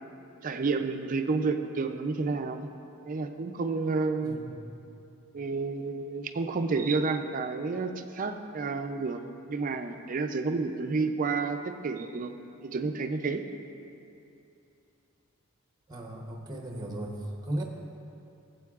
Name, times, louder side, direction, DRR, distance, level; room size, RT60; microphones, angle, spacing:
voice 1, 0.4-2.7 3.0-4.4 5.3-12.3 12.6-13.4, right 4 dB, 40° right, 7 dB, 0.4 m, -30 dB
voice 2, 4.2-4.6 15.9-17.1 17.4-17.6, right 1 dB, 20° right, 0 dB, 0.8 m, -36 dB
16.5 x 7.6 x 2.4 m, 2.7 s
head